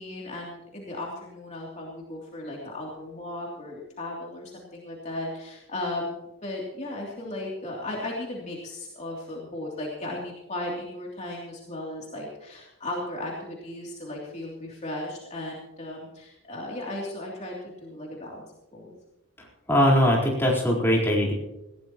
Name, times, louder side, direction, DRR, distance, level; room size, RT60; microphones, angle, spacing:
voice 1, 0.0-6.1 6.4-18.9, left 1 dB, 35° left, -3 dB, 3.0 m, -36 dB
voice 2, 19.7-21.3, equal, 10° left, -4 dB, 4.2 m, -21 dB
20.0 x 16.0 x 3.0 m, 0.94 s
head